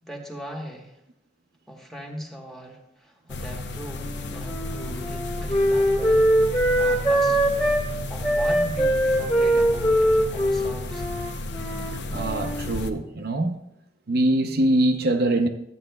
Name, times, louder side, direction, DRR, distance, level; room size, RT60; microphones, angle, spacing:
voice 1, 0.0-1.0 1.7-7.4 8.1-11.0, equal, ahead, 1.1 m, -39 dB
sound 1, 3.3-12.9, left 2 dB, 65° left, 0.6 m, -33 dB
Wind instrument woodwind instrument, 3.9-7.9 8.2-12.7, equal, 25° left, 1.6 m, -22 dB
voice 2, 12.1-13.5 14.1-15.5, right 1 dB, 55° right, 0.6 m, -23 dB
13.0 x 8.3 x 2.2 m
head